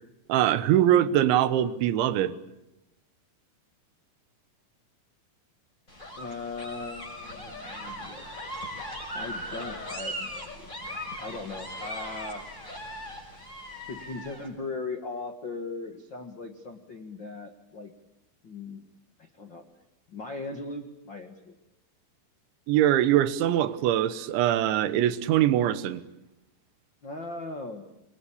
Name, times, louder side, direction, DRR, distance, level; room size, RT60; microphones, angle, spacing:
voice 1, 0.3-2.4 22.7-26.0, right 12 dB, 80° right, 13 dB, 3.5 m, -23 dB
sound 1, 5.9-14.5, equal, 15° left, 6.4 m, -39 dB
voice 2, 6.2-8.2 9.1-10.7 11.2-12.4 13.9-17.9 18.4-18.8 19.2-19.6 20.1-21.6 27.0-27.8, left 3 dB, 85° left, 5 dB, 1.0 m, -38 dB
28.5 x 23.0 x 8.6 m, 0.90 s
omnidirectional pair, 5.3 m